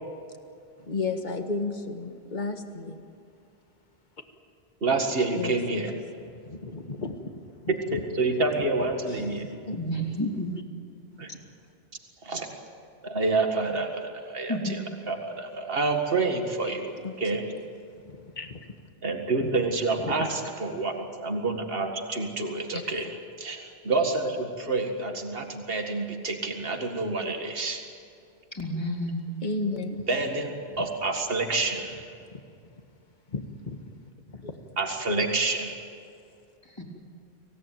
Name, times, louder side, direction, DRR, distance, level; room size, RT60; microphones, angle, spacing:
voice 1, 0.8-3.0 5.3-6.0 6.3-7.4 7.9-8.0 8.6-8.7 9.1-10.2 16.6-17.4 18.0-18.7 19.4-19.5 20.0-20.3 22.7-22.8 29.4-30.1 30.7-30.8 32.3-32.4 33.3-33.9 34.3-34.6, left 3 dB, 45° left, 6 dB, 1.8 m, -34 dB
voice 2, 4.8-5.9 7.9-9.5 11.2-11.3 12.2-12.5 13.0-16.9 17.2-17.5 19.0-23.1 23.4-27.8 30.1-32.0 34.8-35.7, right 3 dB, 60° right, 3 dB, 2.1 m, -28 dB
voice 3, 9.8-10.5 14.5-14.8 28.5-29.2 36.8-36.9, equal, 25° left, 0 dB, 3.5 m, -30 dB
25.5 x 17.5 x 9.3 m, 2.4 s
omnidirectional pair, 1.1 m